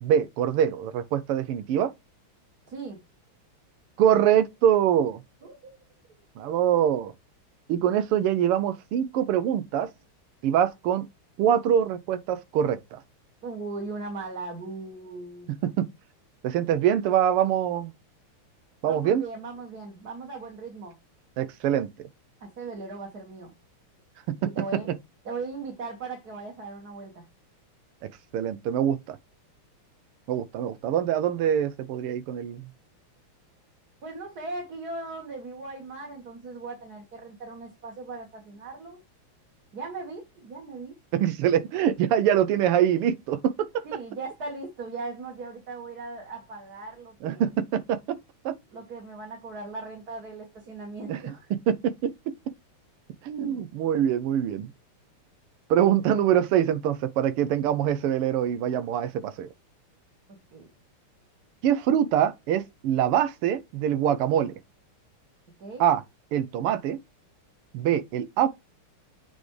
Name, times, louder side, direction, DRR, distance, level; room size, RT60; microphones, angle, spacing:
voice 1, 0.0-1.9 4.0-5.2 6.4-7.1 7.7-9.9 10.4-11.1 11.4-13.0 15.5-15.9 16.4-17.9 18.8-19.2 21.4-22.1 24.3-24.5 28.3-29.2 30.3-32.6 41.1-43.8 47.2-48.2 48.4-48.5 51.1-51.2 51.7-52.3 53.2-54.7 55.7-59.5 61.6-64.5 65.8-66.0 66.3-67.0 67.7-68.5, right 10 dB, 85° right, 1.7 m, -24 dB
voice 2, 2.7-3.0 5.4-5.8 13.4-15.5 18.9-20.9 22.4-23.5 24.4-24.9 25.2-27.2 34.0-39.0 39.7-40.9 43.8-47.4 48.7-51.5 60.3-60.7 65.6-65.8, right 3 dB, 45° right, 2.2 m, -38 dB
8.3 x 4.2 x 3.2 m
omnidirectional pair, 2.4 m